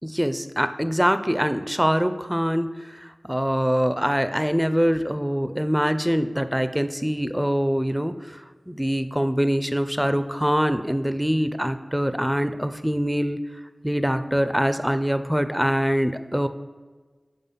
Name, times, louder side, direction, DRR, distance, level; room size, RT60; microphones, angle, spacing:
voice 1, 0.0-8.4 8.7-13.4 13.8-16.5, equal, 5° right, 10 dB, 0.4 m, -24 dB
5.6 x 4.8 x 5.5 m, 1.4 s
wide cardioid pair, 60°, 0 cm